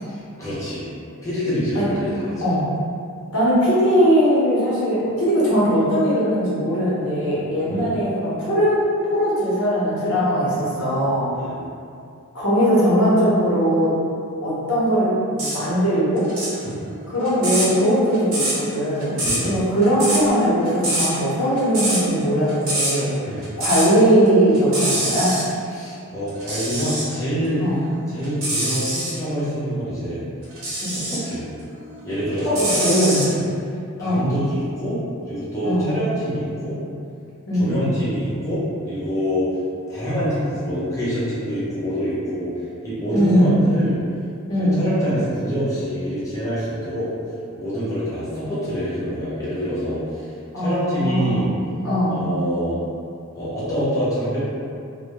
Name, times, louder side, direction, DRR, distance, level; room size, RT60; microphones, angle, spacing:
voice 1, 0.1-0.9 1.2-2.4 7.7-7.9 11.3-11.7 16.6-16.9 19.2-19.6 23.2-23.5 25.7-27.6 28.1-30.2 30.9-31.5 32.0-33.4 34.0-36.8 37.5-39.5 39.9-43.9 44.6-47.1 47.5-51.5 52.1-52.8 53.3-54.4, equal, 15° left, -11 dB, 0.5 m, -26 dB
voice 2, 3.3-11.3 12.3-13.9 14.4-16.3 17.1-19.1 19.4-23.1 23.6-25.3 27.6-27.8 30.8-31.0 32.8-33.1 34.0-34.3 35.6-35.9 37.5-37.8 43.1-43.6 44.5-44.8 50.5-51.5 51.8-52.2, equal, 75° left, -9 dB, 0.8 m, -19 dB
sound 1, 15.4-15.6 16.2-24.0 24.3-25.5 26.3-27.1 27.7-29.2 30.5-31.3 31.8-33.3, right 1 dB, 65° right, 0.7 m, -25 dB
2.2 x 2.0 x 2.8 m, 2.4 s
head